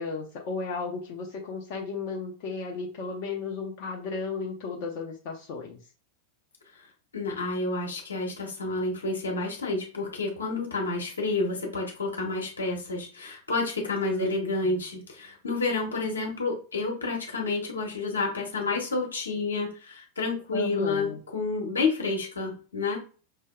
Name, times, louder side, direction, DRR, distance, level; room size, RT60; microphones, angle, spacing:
voice 1, 0.0-5.8 14.1-14.5 20.5-21.2, left 4 dB, 45° left, -1 dB, 0.8 m, -34 dB
voice 2, 7.1-23.0, left 3 dB, 75° left, 0 dB, 1.2 m, -29 dB
5.7 x 2.8 x 2.2 m, 0.36 s
figure-of-eight pair, 90°, 0 cm